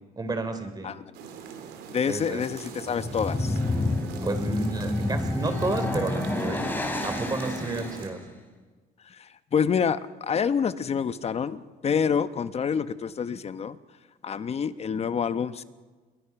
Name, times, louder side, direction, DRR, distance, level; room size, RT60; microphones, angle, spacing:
voice 1, 0.2-0.9 2.1-2.4 4.2-6.7 7.0-8.2, right 3 dB, 25° right, 8 dB, 3.2 m, -31 dB
sound 1, 1.1-8.1, right 7 dB, 85° right, 3.5 m, -42 dB
voice 2, 1.9-3.6 9.1-13.8 14.2-15.6, left 7 dB, 40° left, 13 dB, 1.0 m, -27 dB
sound 2, 2.8-8.2, left 2 dB, 10° left, 3.4 m, -29 dB
27.5 x 22.0 x 5.9 m, 1.4 s
cardioid pair, 110°, 17 cm